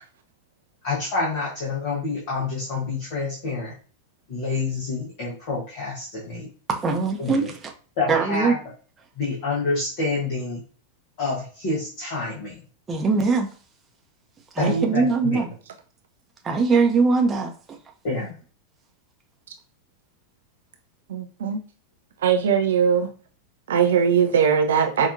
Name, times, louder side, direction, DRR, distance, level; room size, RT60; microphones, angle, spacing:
voice 1, 0.8-3.7 4.3-6.5 7.2-7.5 8.0-8.5 9.2-10.6 11.2-12.6 14.6-15.4 18.0-18.3, left 3 dB, 45° left, -6 dB, 1.3 m, -28 dB
voice 2, 6.7-7.7 8.1-8.5 12.9-13.5 14.5-15.5 16.4-17.5, right 4 dB, 20° right, 2 dB, 0.8 m, -21 dB
voice 3, 21.1-21.6 22.2-23.1 23.7-25.1, right 7 dB, 60° right, 4 dB, 0.5 m, -20 dB
5.0 x 2.7 x 2.6 m, 0.39 s
figure-of-eight pair, 90°, 0 cm